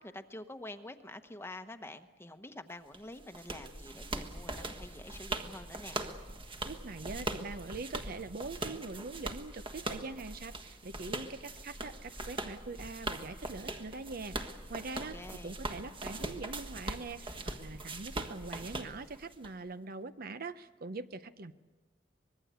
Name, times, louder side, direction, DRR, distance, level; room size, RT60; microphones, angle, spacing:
voice 1, 0.0-6.0 14.9-15.6, left 1 dB, 15° left, 8 dB, 1.0 m, -47 dB
sound 1, 2.9-19.5, right 2 dB, 30° right, 1.5 m, -41 dB
voice 2, 6.6-21.5, right 3 dB, 55° right, 12 dB, 0.7 m, -43 dB
24.5 x 21.5 x 8.1 m, 1.3 s
head